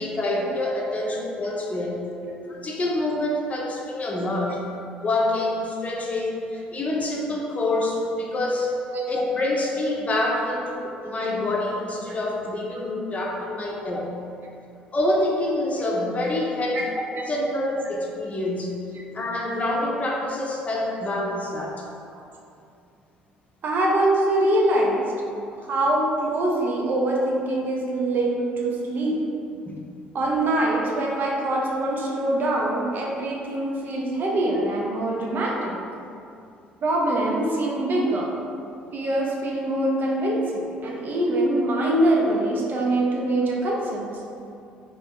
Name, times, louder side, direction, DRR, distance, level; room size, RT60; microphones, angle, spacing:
voice 1, 0.0-2.1 2.5-4.6 5.0-8.8 9.1-14.1 14.9-18.8 19.1-21.9 29.6-29.8, left 1 dB, 30° left, -2 dB, 0.7 m, -26 dB
voice 2, 23.6-25.0 25.7-29.2 30.1-35.8 36.8-38.3 38.9-44.2, right 1 dB, 45° right, -2 dB, 0.6 m, -24 dB
3.0 x 2.6 x 3.6 m, 2.5 s
figure-of-eight pair, 50°, 5 cm